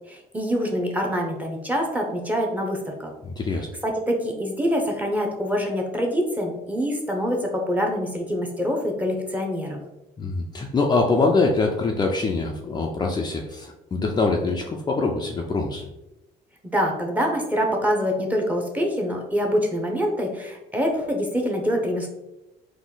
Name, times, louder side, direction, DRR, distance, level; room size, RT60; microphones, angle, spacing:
voice 1, 0.1-3.1 3.8-9.8 16.7-22.1, equal, 10° right, 1 dB, 0.9 m, -25 dB
voice 2, 3.2-3.7 10.2-15.8, left 3 dB, 25° left, 1 dB, 0.5 m, -24 dB
4.1 x 2.7 x 3.8 m, 0.93 s
cardioid pair, 110°, 17 cm